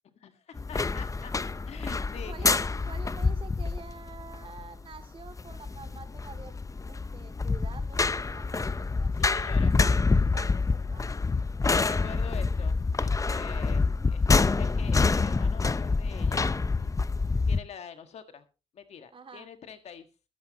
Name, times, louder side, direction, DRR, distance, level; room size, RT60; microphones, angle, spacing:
voice 1, 0.1-1.3 1.7-2.5 9.1-9.8 11.7-14.3 14.6-16.5 16.8-17.1 17.5-18.4 18.7-20.1, left 7 dB, 80° left, 8 dB, 1.7 m, -45 dB
sound 1, 0.6-17.6, left 4 dB, 30° left, 0.6 m, -27 dB
voice 2, 1.7-6.6 6.8-9.7 10.3-11.3 19.1-19.5, right 4 dB, 55° right, 8 dB, 2.5 m, -48 dB
20.5 x 8.2 x 3.0 m, 0.31 s
cardioid pair, 55°, 11 cm